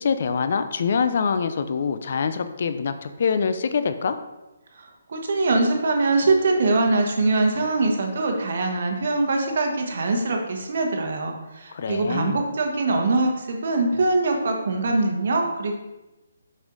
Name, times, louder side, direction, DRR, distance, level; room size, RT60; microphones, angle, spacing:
voice 1, 0.0-4.2 11.7-12.4, left 5 dB, 50° left, 10 dB, 0.5 m, -24 dB
voice 2, 4.8-15.7, right 2 dB, 55° right, 2 dB, 1.3 m, -23 dB
6.1 x 5.4 x 3.9 m, 1.0 s
hypercardioid pair, 165°, 0 cm